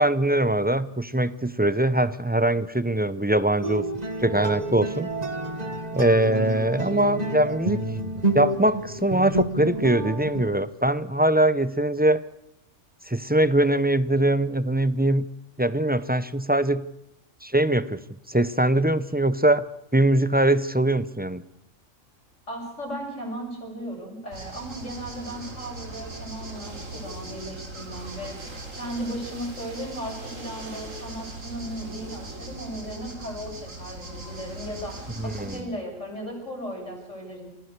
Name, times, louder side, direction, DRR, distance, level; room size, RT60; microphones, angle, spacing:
voice 1, 0.0-3.8 4.2-5.1 5.9-7.8 8.3-12.2 13.1-15.2 15.6-16.8 17.4-18.0 18.3-19.6 19.9-21.4 35.2-35.7, right 1 dB, 10° right, 15 dB, 0.5 m, -22 dB
sound 1, 3.6-10.5, right 1 dB, 35° right, 1.8 m, -29 dB
voice 2, 22.5-37.5, equal, 70° left, 0 dB, 7.4 m, -36 dB
sound 2, 24.3-35.6, right 2 dB, 85° right, 3.6 m, -39 dB
28.5 x 15.5 x 6.7 m, 0.84 s
omnidirectional pair, 1.3 m